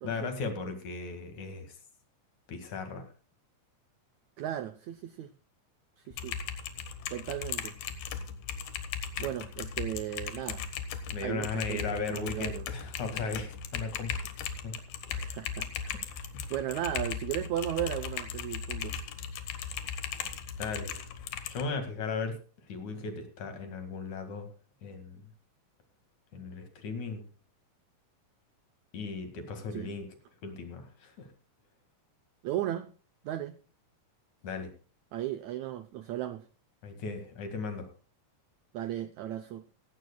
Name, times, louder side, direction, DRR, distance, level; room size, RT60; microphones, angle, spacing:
voice 1, 0.0-1.7 2.5-3.1 11.1-14.2 14.6-14.7 16.3-16.4 20.6-21.0 21.5-22.4 22.7-24.5 24.8-25.3 26.3-27.2 28.9-30.1 30.4-31.3 34.4-34.7 36.8-37.9, left 4 dB, 60° left, 3.2 m, -37 dB
voice 2, 4.4-5.3 6.0-6.4 7.1-7.7 9.2-10.6 11.2-12.7 15.1-16.2 16.5-19.0 29.7-29.9 32.4-32.9 33.2-33.6 35.1-36.4 38.7-39.6, right 12 dB, 80° right, 1.6 m, -36 dB
Typing, 6.1-21.6, left 7 dB, 90° left, 3.1 m, -38 dB
17.0 x 15.5 x 2.2 m
omnidirectional pair, 4.0 m